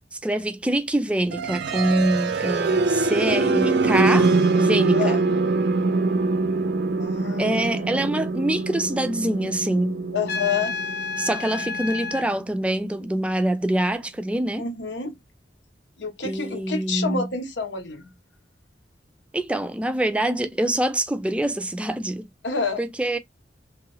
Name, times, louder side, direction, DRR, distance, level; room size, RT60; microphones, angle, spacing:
voice 1, 0.1-5.2 7.4-10.0 11.2-14.7 16.2-17.3 19.3-22.3 22.8-23.2, right 1 dB, 5° right, 0.3 m, -25 dB
sound 1, 1.3-13.2, right 3 dB, 65° right, 0.5 m, -24 dB
voice 2, 7.0-8.1 10.1-10.7 14.6-15.2 16.0-18.1 22.4-22.9, left 5 dB, 85° left, 0.9 m, -29 dB
Trumpet, 10.3-12.3, left 4 dB, 60° left, 0.5 m, -30 dB
3.0 x 2.4 x 3.1 m
head